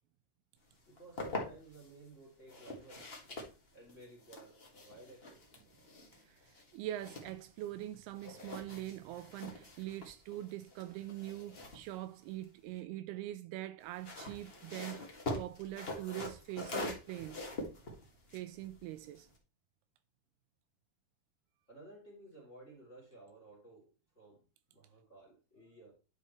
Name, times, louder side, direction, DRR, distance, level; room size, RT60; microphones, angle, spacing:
sound 1, 0.8-1.9 2.5-7.9 8.1-12.8 13.8-19.4, left 2 dB, 65° left, 0.5 m, -45 dB
voice 1, 0.9-3.1 3.7-5.5 21.7-24.4 24.7-25.9, right 2 dB, 20° left, 3.0 m, -56 dB
voice 2, 6.2-17.5 18.3-19.3, right 14 dB, 85° right, 2.5 m, -43 dB
10.5 x 5.6 x 3.1 m
omnidirectional pair, 4.6 m